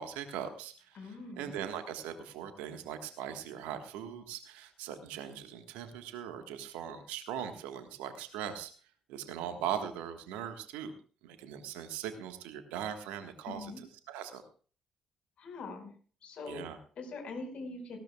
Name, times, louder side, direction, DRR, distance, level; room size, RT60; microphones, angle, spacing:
voice 1, 0.0-8.7 9.1-10.9 11.2-13.7 14.1-14.4 16.4-16.8, right 9 dB, 70° right, 8 dB, 1.5 m, -40 dB
voice 2, 0.9-1.5 13.5-13.8 15.4-15.9 16.2-16.6 16.9-18.0, left 3 dB, 55° left, 4 dB, 5.1 m, -42 dB
18.5 x 16.5 x 2.4 m, 0.40 s
figure-of-eight pair, 45°, 2 cm